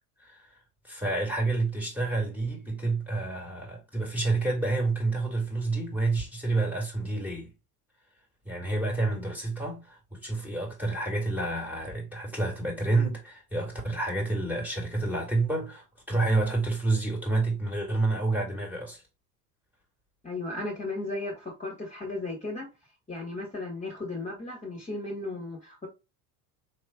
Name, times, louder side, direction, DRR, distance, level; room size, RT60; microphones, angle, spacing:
voice 1, 0.8-7.5 8.4-19.0, right 2 dB, 5° right, 2.1 m, -29 dB
voice 2, 20.2-22.7 23.1-25.9, left 2 dB, 15° left, 1.7 m, -35 dB
4.2 x 3.2 x 2.2 m
hypercardioid pair, 90°, 45 cm